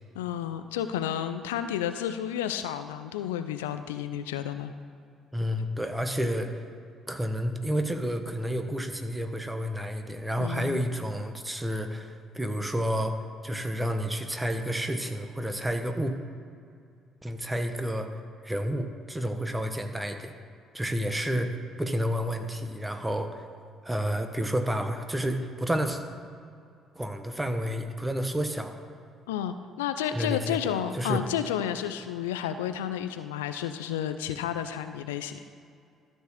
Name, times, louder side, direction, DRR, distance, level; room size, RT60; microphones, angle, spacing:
voice 1, 0.1-4.7 10.4-10.8 29.3-35.4, left 10 dB, 75° left, 10 dB, 0.4 m, -31 dB
voice 2, 5.3-6.5 7.1-13.1 13.4-16.1 17.2-18.1 18.4-20.3 20.7-21.5 21.8-23.4 23.8-26.0 26.9-28.8 30.1-31.2, equal, 10° right, 6 dB, 1.1 m, -30 dB
13.5 x 4.5 x 7.2 m, 2.3 s
figure-of-eight pair, 50°, 0 cm